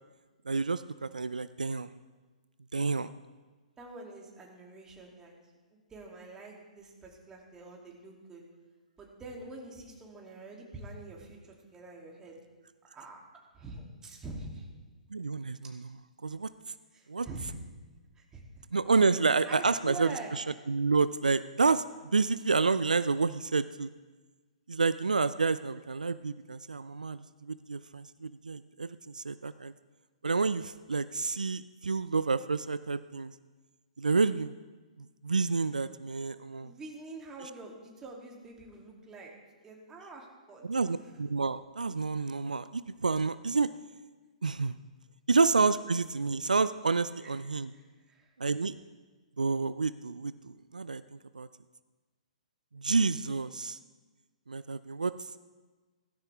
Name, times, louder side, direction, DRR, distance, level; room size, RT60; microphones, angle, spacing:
voice 1, 0.5-1.9 2.7-3.1 15.1-15.8 16.2-16.5 17.1-17.3 18.7-20.2 20.7-21.8 22.1-23.9 24.7-29.7 30.2-33.3 34.0-34.5 35.2-36.7 40.6-43.7 44.4-44.7 45.3-47.7 48.4-48.7 49.4-51.0 51.3-51.5 52.7-53.8 54.5-55.1, right 4 dB, 80° right, 14 dB, 0.4 m, -29 dB
voice 2, 3.8-5.3 5.7-8.4 9.0-12.4 12.9-13.2 13.5-14.7 16.9-17.7 18.1-18.4 19.4-20.3 36.6-39.3 39.6-40.8 47.2-47.3 47.7-48.3, right 2 dB, 15° right, -1 dB, 2.9 m, -45 dB
16.5 x 15.0 x 3.5 m, 1.3 s
figure-of-eight pair, 120°, 4 cm